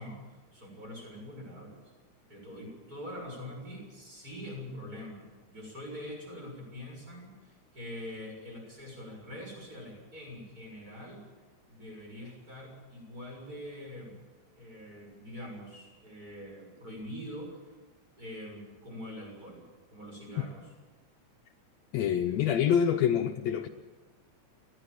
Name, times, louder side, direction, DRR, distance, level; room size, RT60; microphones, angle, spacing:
voice 1, 0.0-1.9 2.3-11.2 11.7-14.2 14.6-17.6 18.2-19.6 19.9-20.7, left 1 dB, 25° right, 7.1 m, -44 dB
voice 2, 21.9-23.7, left 9 dB, 70° left, 1.9 m, -26 dB
19.5 x 15.0 x 9.0 m
omnidirectional pair, 3.4 m